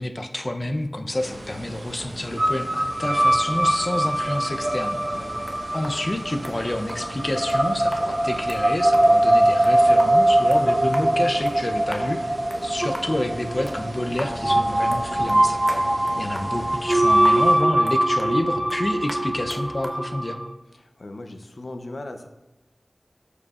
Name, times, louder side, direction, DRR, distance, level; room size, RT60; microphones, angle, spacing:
voice 1, 0.0-5.0 5.7-12.2 12.6-15.6 16.2-20.4, left 1 dB, 40° left, 5 dB, 0.6 m, -28 dB
sound 1, 1.2-17.6, right 1 dB, 80° right, 1.0 m, -39 dB
sound 2, 2.4-20.5, right 1 dB, 35° right, 0.5 m, -22 dB
voice 2, 5.1-5.5 11.7-12.0 16.1-16.3 20.7-22.3, left 2 dB, 85° left, 6 dB, 0.6 m, -39 dB
sound 3, 5.2-19.9, equal, ahead, 0.9 m, -41 dB
12.5 x 4.9 x 2.4 m, 0.98 s
wide cardioid pair, 65°, 0 cm